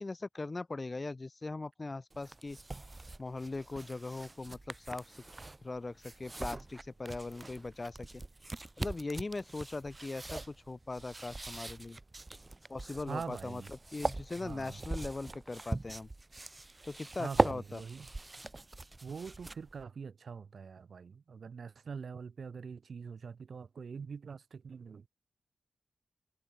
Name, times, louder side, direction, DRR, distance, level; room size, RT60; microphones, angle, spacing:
voice 1, 0.0-2.6 3.2-5.2 5.6-8.1 8.8-12.0 12.7-16.1 16.8-17.8, left 3 dB, 30° left, 1.7 m, -40 dB
sound 1, 2.1-19.8, right 2 dB, 25° right, 4.3 m, -40 dB
voice 2, 13.1-13.7 14.4-14.8 17.2-18.1 19.0-25.1, right 5 dB, 60° right, 1.5 m, -44 dB
wide cardioid pair, 105°, 0 cm